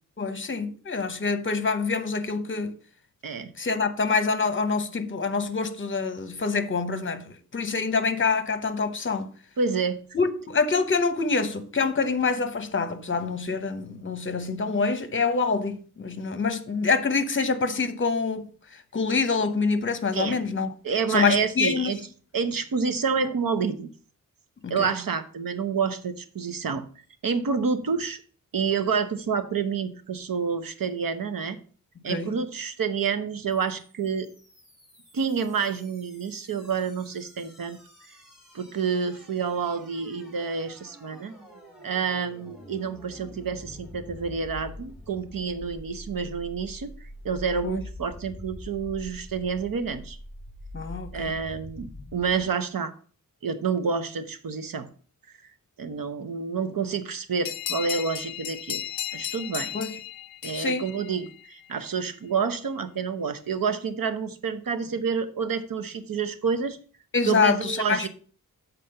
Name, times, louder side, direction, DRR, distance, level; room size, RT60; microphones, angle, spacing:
voice 1, 0.2-2.7 3.6-9.3 10.1-18.5 18.9-20.7 21.1-22.0 24.6-24.9 32.1-32.3 47.6-47.8 50.7-51.4 59.7-60.0 60.5-60.9 67.1-68.1, left 4 dB, 35° left, 0.9 m, -26 dB
voice 2, 9.6-10.0 20.1-20.4 20.8-22.0 22.3-23.9 24.7-26.8 27.2-28.2 28.5-31.6 32.0-34.3 35.1-37.8 38.5-41.3 41.8-50.2 51.1-52.9 53.4-54.9 55.8-58.8 59.1-59.7 60.4-66.8 67.2-68.1, right 5 dB, 75° right, 1.0 m, -28 dB
sound 1, 33.5-52.5, left 1 dB, ahead, 2.1 m, -45 dB
sound 2, 57.4-61.7, left 11 dB, 85° left, 0.5 m, -35 dB
7.3 x 4.1 x 6.7 m
wide cardioid pair, 130°, 34 cm